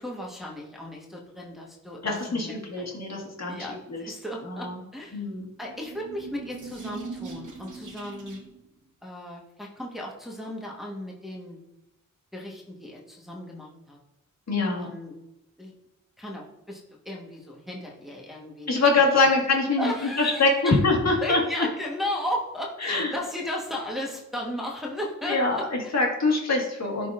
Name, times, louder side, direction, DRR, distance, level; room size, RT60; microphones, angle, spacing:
voice 1, 0.0-2.9 3.5-5.2 5.6-8.4 9.0-11.6 12.3-14.0 14.8-15.1 15.6-15.7 16.2-18.8 19.1-19.3 19.8-20.8 21.2-26.0, left 1 dB, ahead, -3 dB, 1.3 m, -35 dB
voice 2, 2.0-4.0 4.5-4.8 5.1-5.5 14.5-14.9 18.7-19.9 20.2-21.4 22.8-23.1 25.3-27.1, left 3 dB, 55° left, -1 dB, 1.8 m, -24 dB
sound 1, 5.5-8.7, right 4 dB, 70° right, 1.2 m, -41 dB
10.5 x 3.9 x 2.5 m, 0.92 s
cardioid pair, 55°, 32 cm